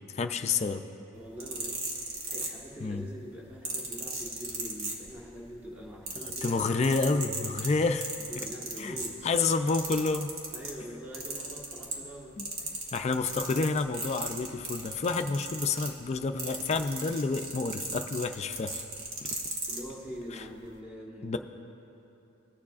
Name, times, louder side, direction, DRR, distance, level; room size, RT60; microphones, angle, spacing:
voice 1, 0.1-0.8 2.8-3.1 6.4-8.1 8.8-9.0 9.2-10.3 12.4-12.5 12.9-18.9 21.2-21.4, left 4 dB, 30° left, 7 dB, 0.3 m, -29 dB
voice 2, 1.1-1.9 2.2-6.6 7.0-7.6 8.3-9.3 10.5-12.9 19.7-21.4, equal, 10° right, -5 dB, 1.4 m, -44 dB
sound 1, 1.2-2.9 3.6-5.4 5.7-10.8 11.1-12.1 12.4-19.8 20.6-20.7, right 3 dB, 75° right, 1.4 m, -36 dB
20.0 x 7.1 x 2.4 m, 2.9 s
head